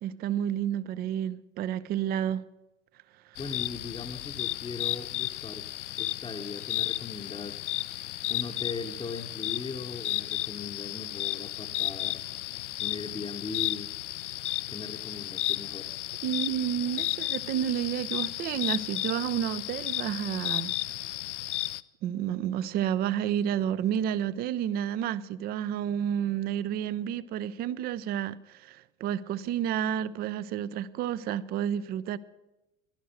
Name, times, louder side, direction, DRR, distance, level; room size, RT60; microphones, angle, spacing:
voice 1, 0.0-2.4 16.2-20.7 22.0-32.2, right 10 dB, 25° right, 0.4 m, -30 dB
sound 1, 3.4-21.8, left 16 dB, 60° left, 0.6 m, -33 dB
voice 2, 3.4-5.6 6.0-7.6 8.2-12.2 12.8-13.9 14.7-15.9, left 4 dB, 10° left, 0.9 m, -39 dB
16.5 x 12.0 x 6.4 m
figure-of-eight pair, 80°, 42 cm